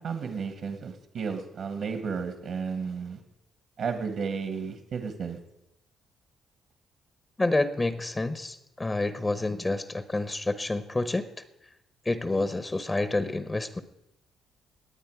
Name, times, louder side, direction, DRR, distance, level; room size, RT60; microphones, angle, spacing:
voice 1, 0.0-3.2 3.8-5.4, right 5 dB, 65° right, 7 dB, 1.6 m, -33 dB
voice 2, 7.4-11.4 12.0-13.8, left 2 dB, 20° left, 12 dB, 0.9 m, -28 dB
20.0 x 8.6 x 4.8 m, 0.87 s
cardioid pair, 90°, 0 cm